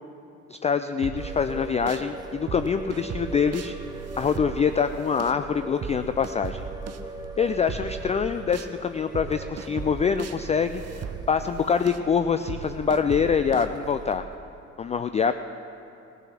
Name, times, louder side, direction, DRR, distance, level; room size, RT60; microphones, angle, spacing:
voice 1, 0.5-3.8 4.2-6.7 7.4-10.8 11.3-14.2 14.8-15.3, left 6 dB, 20° left, 10 dB, 0.3 m, -25 dB
sound 1, 1.0-2.1 2.5-8.7 9.1-14.3, right 7 dB, 35° right, 0.8 m, -38 dB
sound 2, 1.2-14.2, right 1 dB, 10° right, 1.0 m, -42 dB
17.5 x 8.4 x 5.9 m, 2.6 s
figure-of-eight pair, 45°, 42 cm